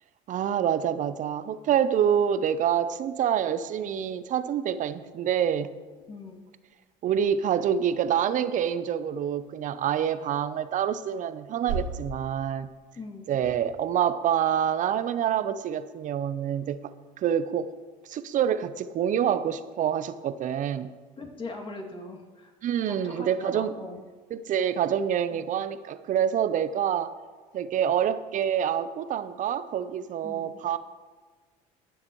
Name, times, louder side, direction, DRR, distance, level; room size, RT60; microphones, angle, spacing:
voice 1, 0.3-5.7 7.0-12.7 13.3-16.8 17.2-17.7 18.1-20.9 22.6-23.7 24.3-27.1 27.5-30.8, right 9 dB, 45° right, 13 dB, 0.7 m, -26 dB
sound 1, 1.6-18.5, right 5 dB, 80° right, 1.8 m, -45 dB
voice 2, 6.1-6.4 13.0-13.3 21.2-22.5 22.9-24.0 25.3-25.5 30.2-30.5, left 2 dB, 30° left, 1 dB, 2.4 m, -40 dB
21.5 x 7.3 x 3.1 m, 1.4 s
supercardioid pair, 85°, 18 cm